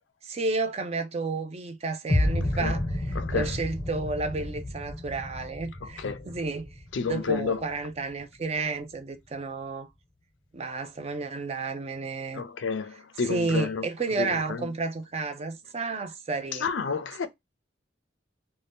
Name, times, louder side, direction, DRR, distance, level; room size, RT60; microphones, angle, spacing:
voice 1, 0.2-6.8 7.0-9.9 10.5-12.4 12.9-16.7, right 3 dB, 35° right, 0.5 m, -31 dB
sound 1, 2.1-8.1, left 1 dB, 20° left, 0.5 m, -31 dB
voice 2, 3.2-3.5 6.0-6.2 6.9-7.6 12.3-13.8 14.2-14.7 16.6-17.3, left 5 dB, 85° left, 0.5 m, -30 dB
2.7 x 2.2 x 3.4 m
head